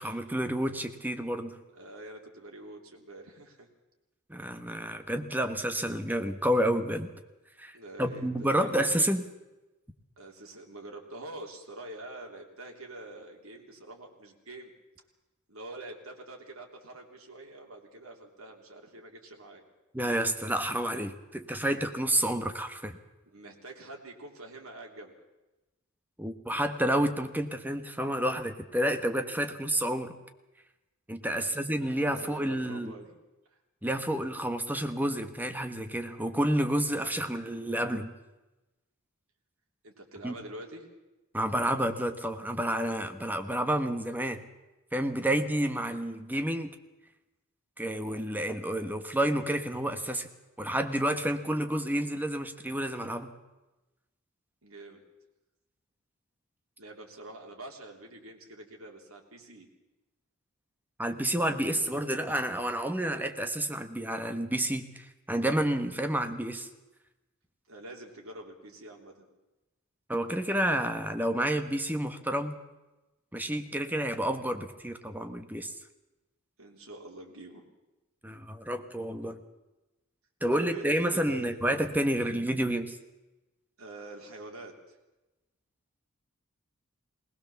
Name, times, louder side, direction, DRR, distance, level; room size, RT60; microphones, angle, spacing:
voice 1, 0.0-1.6 4.3-7.1 7.6-9.2 19.9-23.0 26.2-30.1 31.1-32.9 33.8-38.1 40.2-40.3 41.3-44.4 44.9-46.7 47.8-50.3 50.6-53.3 61.0-66.7 70.1-72.6 73.3-75.7 78.2-79.4 80.4-83.0, right 1 dB, 10° right, 7 dB, 1.4 m, -30 dB
voice 2, 1.7-3.7 7.7-8.8 10.2-14.7 15.5-19.6 23.2-25.1 31.2-33.2 39.8-40.9 54.6-55.0 56.8-59.7 67.7-69.3 76.6-77.6 80.5-81.8 83.8-85.0, right 2 dB, 90° right, 1 dB, 3.2 m, -46 dB
20.0 x 19.5 x 7.1 m, 1.1 s
head